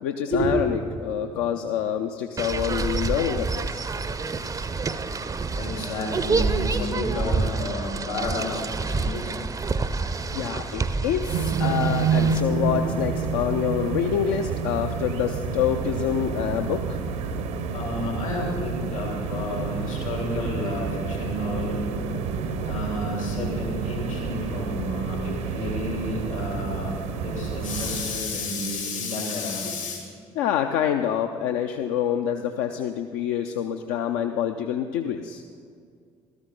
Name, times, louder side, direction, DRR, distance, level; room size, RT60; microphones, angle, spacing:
voice 1, 0.0-3.9 9.7-9.8 10.3-17.0 30.3-35.4, left 9 dB, 60° left, 5 dB, 0.5 m, -27 dB
sound 1, 2.4-12.4, right 4 dB, 20° right, 0.6 m, -28 dB
voice 2, 5.6-9.3 17.7-21.9 22.6-30.0, left 2 dB, 80° left, -2 dB, 3.0 m, -31 dB
sound 2, 11.3-28.3, right 5 dB, 65° right, 0.9 m, -29 dB
14.5 x 13.0 x 3.7 m, 2.2 s
figure-of-eight pair, 50°, 17 cm